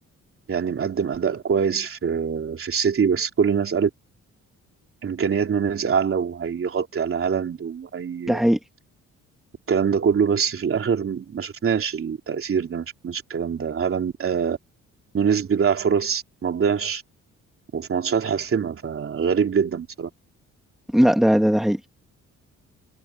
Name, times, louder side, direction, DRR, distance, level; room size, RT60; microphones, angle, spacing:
voice 1, 0.5-3.9 5.0-8.4 9.7-14.6 15.1-17.0 17.7-20.1, right 6 dB, 45° right, 3.3 m, -24 dB
voice 2, 8.3-8.6 20.9-21.9, equal, ahead, 2.4 m, -18 dB
cardioid pair, 90°, 30 cm